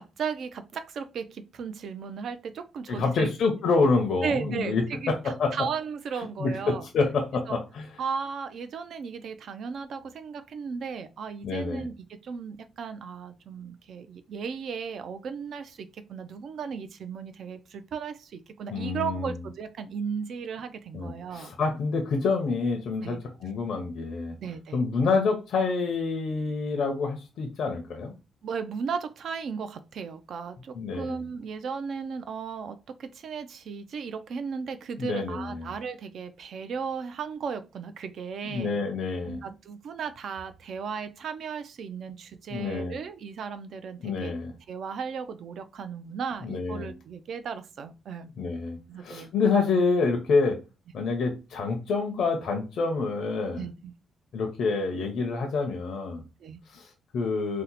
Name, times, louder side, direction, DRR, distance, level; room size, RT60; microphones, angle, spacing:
voice 1, 0.0-3.3 4.2-5.1 5.5-6.9 7.5-7.6 8.0-11.9 12.2-21.5 23.0-23.2 24.4-24.8 28.4-38.8 39.3-44.3 44.7-48.3 48.9-49.3 53.5-53.9 56.4-56.6, right 6 dB, 65° right, 0.4 m, -35 dB
voice 2, 2.9-5.5 6.2-7.9 11.4-11.9 18.7-19.4 20.9-24.3 24.7-28.1 30.7-31.2 35.0-35.7 38.4-39.4 42.5-43.0 44.0-44.5 46.4-46.9 48.4-50.6 50.9-53.6 54.3-56.2 56.7-57.6, left 4 dB, 70° left, 0.6 m, -27 dB
2.8 x 2.1 x 3.9 m
cardioid pair, 120°, 0 cm